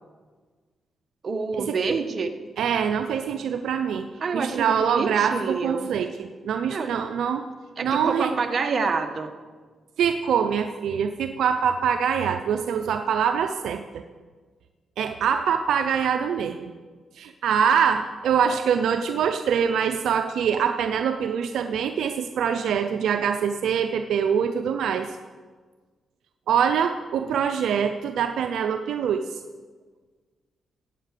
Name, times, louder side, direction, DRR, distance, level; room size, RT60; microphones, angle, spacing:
voice 1, 1.2-2.3 4.2-5.9 6.7-6.9 7.8-9.3, right 4 dB, 50° right, 6 dB, 1.5 m, -27 dB
voice 2, 2.6-4.1 4.3-7.4 7.8-8.3 10.0-14.0 15.0-16.7 17.2-25.1 26.5-29.3, right 7 dB, 80° right, 7 dB, 0.6 m, -24 dB
17.0 x 8.2 x 6.8 m, 1.5 s
cardioid pair, 80°, 0 cm